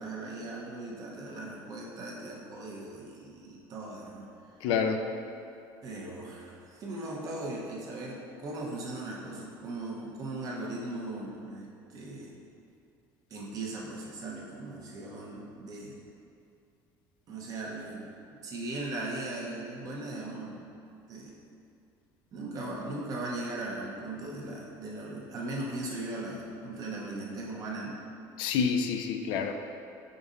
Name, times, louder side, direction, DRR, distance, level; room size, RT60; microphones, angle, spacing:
voice 1, 0.0-4.3 5.8-12.3 13.3-16.0 17.3-20.6 21.1-21.4 22.3-28.0, right 2 dB, 40° right, -3 dB, 0.9 m, -38 dB
voice 2, 4.6-5.0 28.4-29.5, left 6 dB, 70° left, 6 dB, 0.3 m, -28 dB
5.1 x 4.1 x 2.5 m, 2.6 s
cardioid pair, 130°, 9 cm